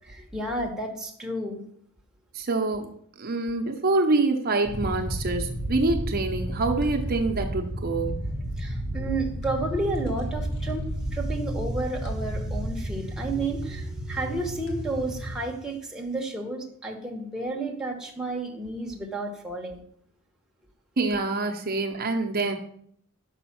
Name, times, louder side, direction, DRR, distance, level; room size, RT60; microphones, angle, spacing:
voice 1, 0.0-1.6 8.6-19.8, right 2 dB, 5° right, 1 dB, 0.9 m, -32 dB
voice 2, 2.3-2.9 3.2-8.2 21.0-22.5, right 3 dB, 45° right, 4 dB, 0.7 m, -26 dB
sound 1, 4.6-15.4, right 1 dB, 55° left, 1.4 m, -32 dB
6.2 x 5.1 x 5.8 m, 0.66 s
head